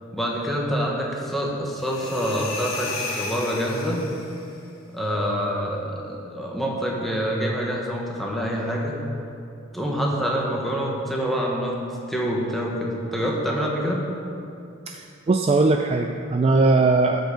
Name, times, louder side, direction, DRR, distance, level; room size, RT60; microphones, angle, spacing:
voice 1, 0.1-4.0 4.9-9.0 9.7-11.8 12.1-14.1, equal, ahead, -3 dB, 1.2 m, -26 dB
sound 1, 1.8-4.5, left 3 dB, 80° left, 1.4 m, -34 dB
voice 2, 15.3-17.2, right 3 dB, 30° right, 4 dB, 0.3 m, -19 dB
13.0 x 5.4 x 5.1 m, 2.6 s
head